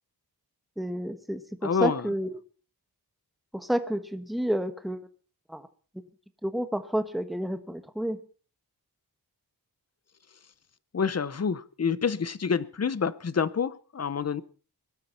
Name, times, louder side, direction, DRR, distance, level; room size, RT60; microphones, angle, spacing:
voice 1, 0.8-2.4 3.5-5.0 5.5-5.7 6.4-8.2, equal, ahead, 9 dB, 1.2 m, -30 dB
voice 2, 1.6-2.1 10.9-14.4, left 6 dB, 40° left, 17 dB, 0.8 m, -27 dB
22.5 x 12.5 x 4.4 m, 0.38 s
wide cardioid pair, 130°, 38 cm